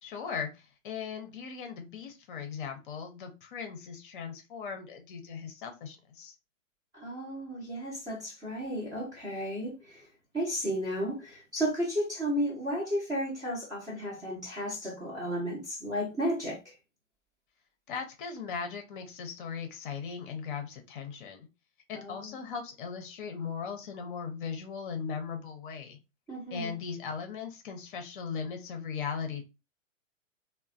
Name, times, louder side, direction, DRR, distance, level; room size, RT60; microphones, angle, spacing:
voice 1, 0.0-6.4 17.9-21.5 21.9-26.0 26.5-29.5, left 6 dB, 40° left, 0.6 m, -38 dB
voice 2, 6.9-10.0 10.3-16.6 21.9-22.1 26.3-26.7, equal, 10° right, 0.5 m, -33 dB
3.0 x 2.1 x 2.4 m
figure-of-eight pair, 115°, 40 cm